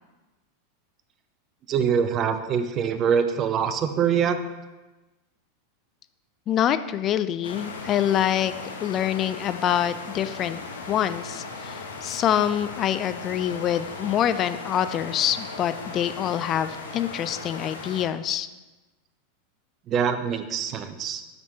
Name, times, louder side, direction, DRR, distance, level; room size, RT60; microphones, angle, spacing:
voice 1, 1.7-4.4 19.9-21.2, right 7 dB, 35° right, 10 dB, 0.6 m, -24 dB
voice 2, 6.5-8.5 8.8-10.6 10.9-18.5, left 10 dB, 35° left, 12 dB, 0.3 m, -25 dB
sound 1, 7.4-18.1, left 3 dB, 80° left, 0.9 m, -38 dB
9.3 x 5.2 x 2.8 m, 1.1 s
figure-of-eight pair, 90°, 0 cm